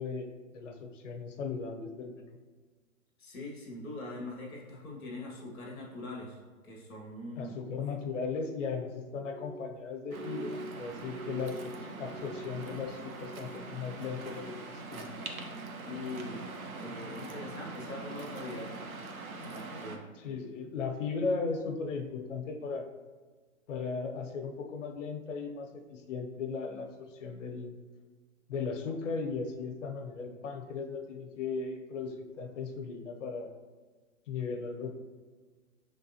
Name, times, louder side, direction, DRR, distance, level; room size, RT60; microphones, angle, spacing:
voice 1, 0.0-2.4 7.4-15.1 20.2-22.8 23.7-27.7 28.5-33.5 34.3-34.9, left 5 dB, 60° left, 4 dB, 0.8 m, -37 dB
voice 2, 3.2-6.4 6.6-7.6 15.8-18.7 19.4-20.1, left 2 dB, ahead, -32 dB, 0.3 m, -42 dB
Glass, 9.2-13.7 14.0-14.7 15.1-15.6 16.2-16.5, right 2 dB, 25° right, 0.7 m, -46 dB
Waves surf, 10.1-20.0, right 3 dB, 85° right, 0.8 m, -43 dB
5.5 x 3.5 x 2.8 m, 1.4 s
hypercardioid pair, 150°, 41 cm